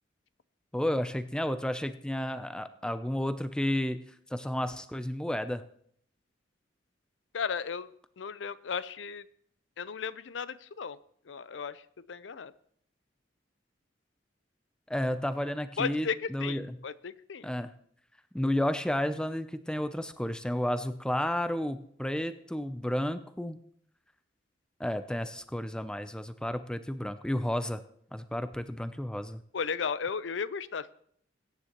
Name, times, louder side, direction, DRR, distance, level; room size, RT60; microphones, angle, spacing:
voice 1, 0.7-4.0 4.3-5.6 14.9-16.7 17.4-17.7 18.3-23.6 24.8-27.8 28.1-29.4, left 1 dB, 5° left, 11 dB, 0.5 m, -32 dB
voice 2, 7.3-7.9 8.2-9.3 9.8-11.0 11.3-11.8 12.1-12.5 15.8-17.5 29.5-30.9, left 6 dB, 75° left, 16 dB, 0.6 m, -35 dB
21.5 x 9.8 x 3.0 m, 0.64 s
head